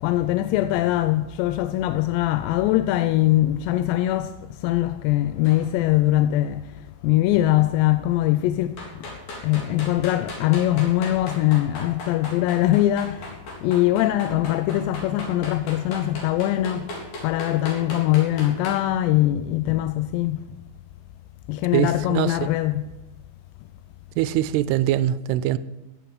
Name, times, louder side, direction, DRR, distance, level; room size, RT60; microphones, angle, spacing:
voice 1, 0.0-4.3 4.6-6.6 7.0-8.8 9.4-13.3 13.6-16.9 17.2-20.4 21.5-22.9, left 14 dB, 90° left, 2.8 m, -22 dB
sound 1, 5.4-5.7 8.8-18.8, left 2 dB, 60° left, 5.3 m, -37 dB
voice 2, 21.7-22.5 24.2-25.6, right 12 dB, 80° right, 2.6 m, -23 dB
15.0 x 7.8 x 9.4 m
omnidirectional pair, 4.9 m